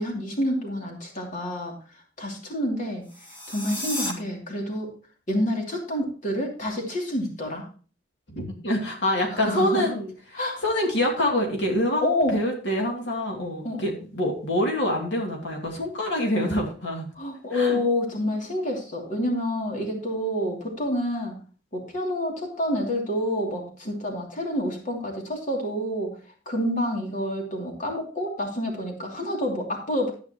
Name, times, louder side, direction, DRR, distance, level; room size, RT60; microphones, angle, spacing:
voice 1, 0.0-1.7 2.2-3.0 3.5-4.9 5.3-7.7 9.3-9.9 10.3-10.6 12.0-12.4 13.6-13.8 17.2-21.3 21.7-26.1 26.5-30.1, left 1 dB, 45° left, 0 dB, 2.8 m, -28 dB
sound 1, 3.0-4.1, left 1 dB, 25° left, 1.8 m, -32 dB
voice 2, 8.3-10.1 10.6-12.0 12.3-17.1 17.5-17.8, left 1 dB, 70° left, 1 dB, 2.7 m, -26 dB
12.0 x 9.3 x 3.0 m, 0.38 s
head